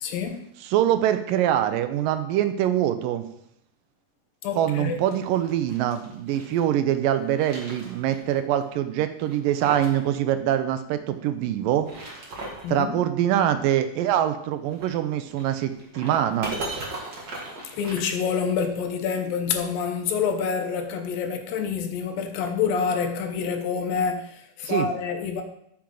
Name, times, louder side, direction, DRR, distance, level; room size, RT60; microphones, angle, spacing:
voice 1, 0.0-0.4 4.4-5.0 12.6-13.0 17.7-25.4, left 6 dB, 80° left, 2.8 m, -27 dB
voice 2, 0.7-3.2 4.6-11.9 12.7-16.6 24.6-24.9, right 11 dB, 80° right, 2.3 m, -24 dB
sound 1, 4.8-6.6 7.1-8.3 8.6-8.7 9.2-10.0 10.3-10.4 11.6-12.7 14.7-18.7, right 2 dB, 35° right, 2.0 m, -38 dB
13.5 x 7.3 x 3.9 m
omnidirectional pair, 4.0 m